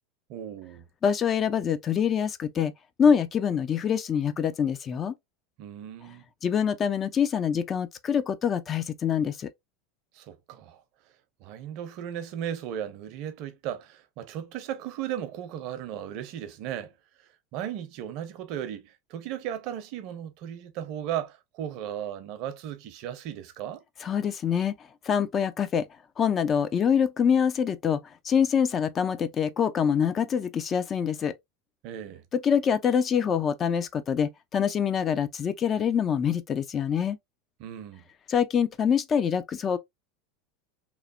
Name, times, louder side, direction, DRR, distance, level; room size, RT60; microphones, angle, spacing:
voice 1, 0.3-0.9 5.6-6.2 10.1-10.8 11.4-16.9 17.2-23.8 31.8-32.2 37.6-38.0, right 10 dB, 60° right, 0.6 m, -36 dB
voice 2, 1.0-2.7 3.0-5.1 6.4-9.5 24.0-24.7 25.0-25.9 26.2-31.3 32.3-37.2 38.3-39.8, left 7 dB, 35° left, 0.4 m, -25 dB
3.0 x 2.0 x 2.4 m
hypercardioid pair, 100°, 0 cm